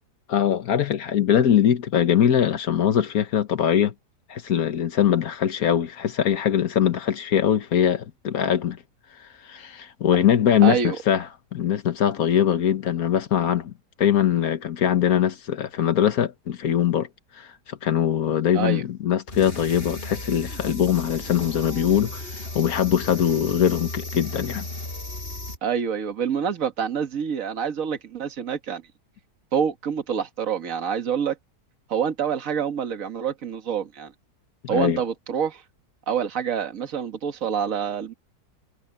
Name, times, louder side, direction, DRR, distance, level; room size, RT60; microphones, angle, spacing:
voice 1, 0.3-3.9 4.3-8.8 9.4-13.7 14.0-17.1 17.4-24.7 34.6-35.0, left 9 dB, 60° left, 1.5 m, -22 dB
voice 2, 10.6-11.0 18.5-18.8 25.6-28.8 29.5-31.4 31.9-34.1 34.7-35.6 36.1-38.1, right 7 dB, 50° right, 1.9 m, -26 dB
sound 1, 19.3-25.6, left 2 dB, 35° left, 5.4 m, -35 dB
omnidirectional pair, 1.8 m